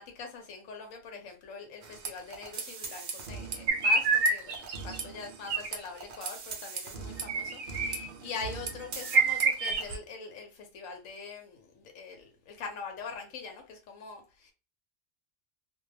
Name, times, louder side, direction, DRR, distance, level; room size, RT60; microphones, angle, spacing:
voice 1, 0.0-14.5, left 5 dB, 85° left, 1.0 m, -43 dB
sound 1, 1.8-10.0, right 5 dB, 55° right, 0.6 m, -41 dB
sound 2, 3.7-5.0 5.5-5.7 7.3-8.1 8.7-8.8 9.0-10.0, right 4 dB, 85° right, 1.0 m, -27 dB
2.3 x 2.2 x 3.1 m
omnidirectional pair, 1.3 m